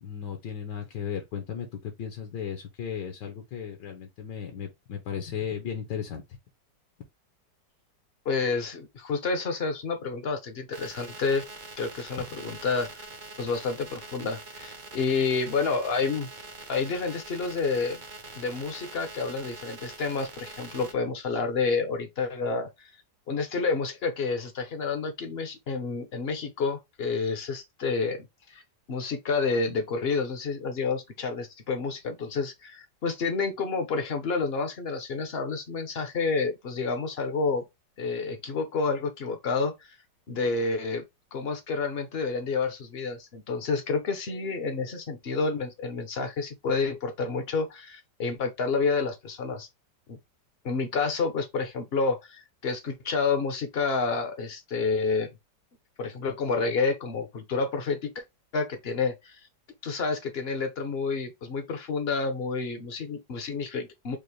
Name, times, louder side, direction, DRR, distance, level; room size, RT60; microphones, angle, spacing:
voice 1, 0.0-6.2, left 7 dB, 75° left, 1.4 m, -35 dB
voice 2, 8.3-11.4 11.8-13.1 13.4-16.3 16.7-18.0 18.3-22.9 23.3-28.6 28.9-37.6 38.0-39.9 40.3-41.0 41.3-49.7 50.1-50.2 50.6-55.3 56.0-58.2 58.5-59.4 59.8-64.2, left 4 dB, 55° left, 0.7 m, -29 dB
sound 1, 10.7-20.9, right 3 dB, 50° right, 0.5 m, -44 dB
5.2 x 2.1 x 3.0 m
omnidirectional pair, 2.0 m